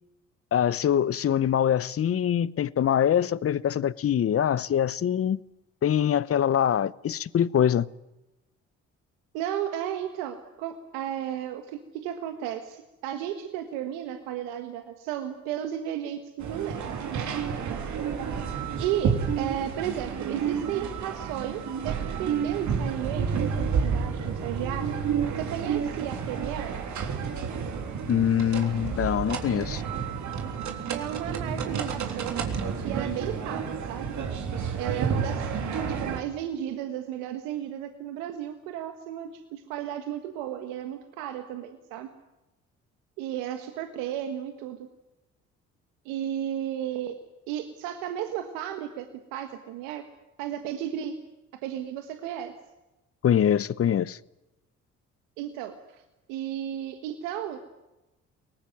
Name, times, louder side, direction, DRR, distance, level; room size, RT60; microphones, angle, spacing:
voice 1, 0.5-5.4 5.8-7.9 28.1-29.8 53.2-54.2, left 9 dB, 45° left, 0.9 m, -24 dB
voice 2, 9.3-17.3 18.8-24.9 25.4-26.8 30.9-32.4 32.8-34.1 34.8-35.5 35.9-42.1 43.2-44.9 46.0-47.2 47.5-50.1 50.4-51.2 51.6-52.5 55.4-56.0 56.3-57.6, right 10 dB, 85° right, 1.6 m, -34 dB
sound 1, 16.4-36.2, right 6 dB, 65° right, 3.6 m, -30 dB
23.0 x 19.0 x 9.3 m
supercardioid pair, 60°, 31 cm